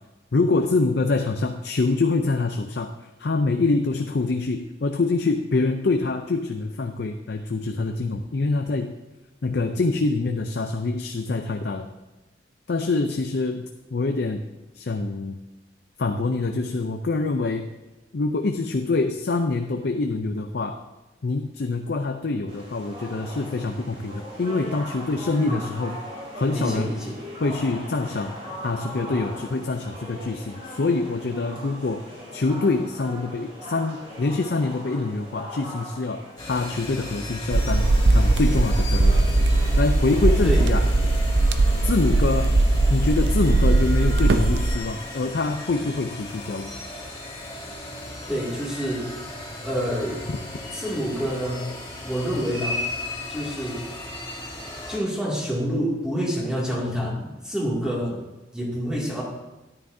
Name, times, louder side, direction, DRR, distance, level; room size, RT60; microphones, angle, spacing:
voice 1, 0.3-2.9 3.2-8.9 9.4-11.9 12.7-14.4 14.7-15.4 16.0-17.7 18.1-20.8 21.2-26.0 26.3-26.9 27.4-28.4 28.6-36.2 36.5-37.9 38.1-39.3 39.8-40.8 41.8-42.6 42.9-46.7 50.3-50.4, left 3 dB, 60° left, 6 dB, 0.5 m, -25 dB
sound 1, 22.5-40.7, equal, 35° right, 3.0 m, -40 dB
voice 2, 25.3-25.6 26.5-27.2 40.4-40.6 48.3-49.1 49.6-50.3 50.7-51.6 52.0-52.8 53.3-53.8 54.9-58.2 58.5-59.2, equal, 5° right, -4 dB, 2.4 m, -27 dB
sound 2, 36.4-55.0, left 1 dB, 20° left, 2.9 m, -36 dB
sound 3, 37.5-44.8, right 2 dB, 70° right, 0.6 m, -19 dB
13.0 x 10.0 x 2.7 m, 1.1 s
head